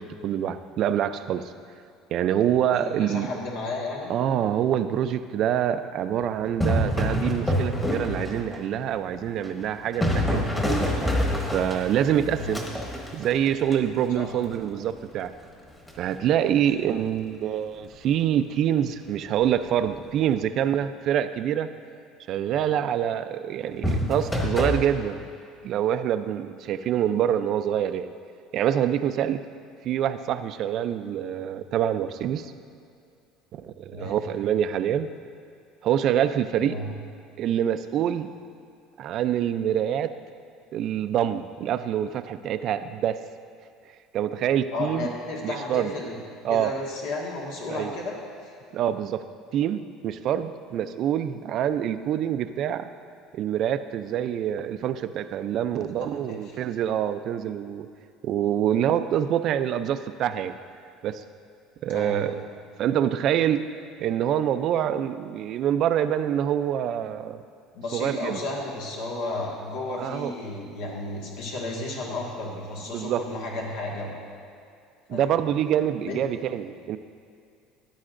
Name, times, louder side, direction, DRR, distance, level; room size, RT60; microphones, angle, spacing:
voice 1, 0.0-1.5 2.1-3.3 4.1-10.5 11.4-12.6 13.1-15.3 16.0-21.7 22.3-25.2 25.6-28.1 28.5-29.4 29.8-32.5 33.5-35.1 35.8-36.8 37.4-38.3 39.0-40.1 40.7-43.2 44.1-45.1 45.4-45.9 46.4-46.7 47.7-47.9 48.7-49.2 49.5-52.9 53.3-57.9 58.2-60.6 61.0-61.2 61.8-62.5 62.8-63.7 64.0-67.4 67.9-68.4 70.0-70.3 72.9-73.2 75.1-77.0, right 10 dB, 45° right, 11 dB, 0.4 m, -26 dB
voice 2, 2.7-4.1 12.3-12.6 14.1-14.3 16.6-16.7 27.3-27.4 33.9-34.2 36.6-36.9 44.7-46.2 46.5-48.2 48.4-48.5 56.0-56.4 61.9-62.3 67.7-74.2 75.1-75.4 76.0-76.2, left 2 dB, 80° left, -2 dB, 1.7 m, -33 dB
sound 1, 6.4-8.6 9.1-14.1 15.9-16.1 23.8-24.8, equal, 10° left, 1.2 m, -26 dB
14.0 x 10.5 x 2.6 m, 2.4 s
cardioid pair, 150°, 0 cm